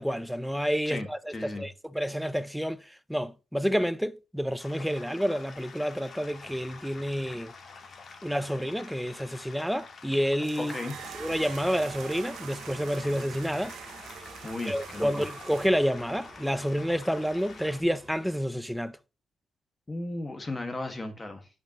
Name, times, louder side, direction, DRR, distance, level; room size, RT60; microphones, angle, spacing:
voice 1, 0.0-2.8 3.1-7.5 8.2-10.7 11.1-13.7 14.7-18.9, equal, ahead, 0.4 m, -29 dB
voice 2, 0.8-1.7 10.6-11.0 14.4-15.3 19.9-21.5, left 2 dB, 20° left, 1.6 m, -35 dB
sound 1, 4.6-17.8, left 4 dB, 45° left, 1.6 m, -48 dB
sound 2, 10.4-15.7, right 8 dB, 75° right, 1.0 m, -44 dB
sound 3, 10.9-18.3, right 2 dB, 35° right, 2.7 m, -50 dB
10.5 x 5.3 x 2.9 m
cardioid pair, 90°, 0 cm